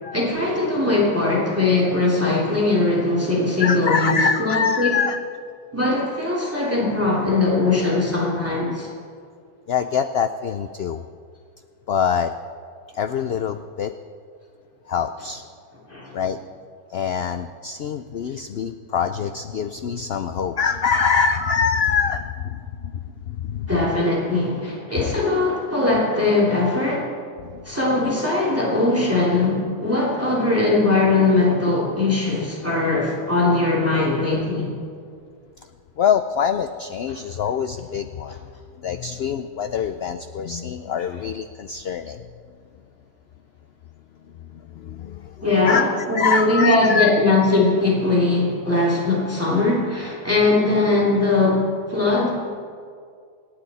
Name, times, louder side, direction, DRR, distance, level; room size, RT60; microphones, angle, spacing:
voice 1, 0.1-4.9 5.7-8.9 15.9-16.1 23.7-27.1 27.6-34.7 45.4-52.3, left 2 dB, 10° right, -5 dB, 2.7 m, -20 dB
voice 2, 3.6-5.2 9.7-11.0 11.9-12.3 12.9-13.9 14.9-15.4 16.1-16.4 16.9-23.7 27.4-27.7 33.5-33.6 36.0-38.4 38.8-42.2 44.4-45.9 46.1-47.1, left 6 dB, 75° left, 9 dB, 0.5 m, -24 dB
26.5 x 9.8 x 4.1 m, 2.2 s
omnidirectional pair, 1.6 m